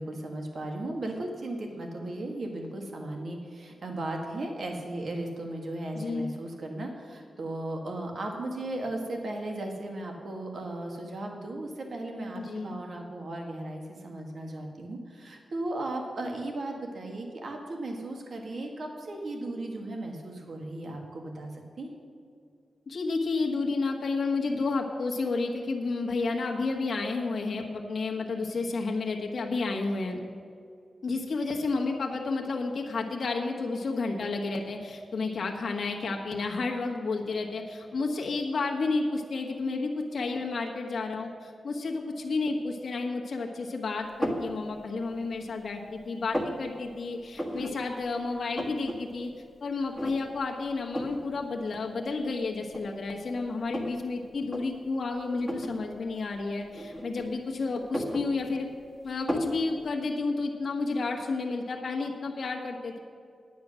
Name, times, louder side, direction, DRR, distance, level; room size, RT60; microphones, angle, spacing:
voice 1, 0.0-22.0, right 1 dB, 55° right, 2 dB, 1.7 m, -36 dB
voice 2, 5.9-6.3 12.3-12.8 22.9-30.2 31.0-49.3 49.6-58.7 59.0-63.0, left 3 dB, 55° left, 0 dB, 1.4 m, -31 dB
sound 1, 44.2-44.5 45.1-45.7 46.0-46.6 47.3-47.7 48.1-48.2 48.3-49.0 49.3-49.4 50.0-50.4 50.9-51.2 52.1-52.2 52.7-54.0 54.4-54.6 55.4-55.8 56.7-57.4 57.8-58.8 59.3-59.6, equal, 10° right, 1.5 m, -33 dB
10.5 x 9.5 x 6.3 m, 2.3 s
wide cardioid pair, 145°, 0 cm